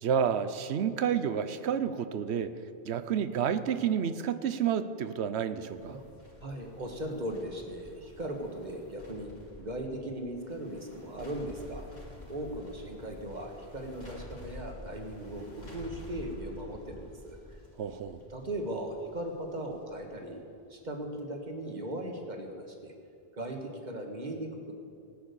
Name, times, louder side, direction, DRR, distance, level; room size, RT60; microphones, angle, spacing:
voice 1, 0.0-2.5 2.8-6.0 17.8-18.2, right 8 dB, 80° right, 12 dB, 1.0 m, -30 dB
sound 1, 5.7-21.2 21.5-21.6, left 1 dB, 40° left, 2.4 m, -49 dB
voice 2, 6.4-9.3 9.6-11.9 12.3-17.6 18.3-20.4 20.7-22.9 23.3-24.7, right 1 dB, 45° right, 2 dB, 1.8 m, -38 dB
17.5 x 8.8 x 6.9 m, 2.5 s
omnidirectional pair, 1.1 m